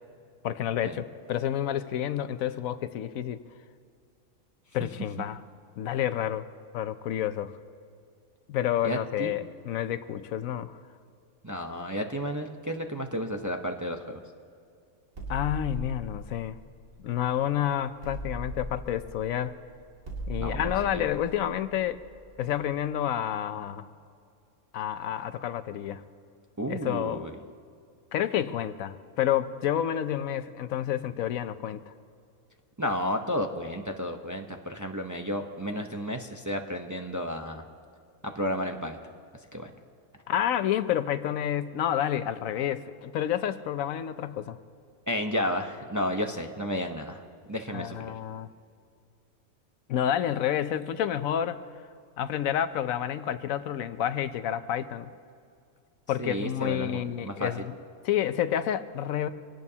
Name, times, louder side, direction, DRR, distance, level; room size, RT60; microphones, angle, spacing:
voice 1, 0.4-3.4 4.7-5.4 5.8-6.5 6.7-7.5 8.5-10.8 15.3-16.5 17.0-19.5 20.3-22.0 22.4-23.9 24.7-26.0 26.7-27.3 28.1-31.8 40.3-44.6 47.7-48.5 49.9-51.6 52.2-55.1 56.1-57.7 58.0-59.3, left 10 dB, 80° left, 12 dB, 1.1 m, -29 dB
voice 2, 8.8-9.3 11.4-14.2 20.4-21.1 26.6-27.3 32.8-37.6 38.2-39.0 39.5-39.7 45.1-47.2 47.5-48.1 56.2-57.5, equal, 20° right, 4 dB, 0.6 m, -32 dB
sound 1, 15.1-17.5 18.0-22.7, equal, 85° right, 3.0 m, -39 dB
25.5 x 18.0 x 2.8 m, 2.3 s
omnidirectional pair, 1.4 m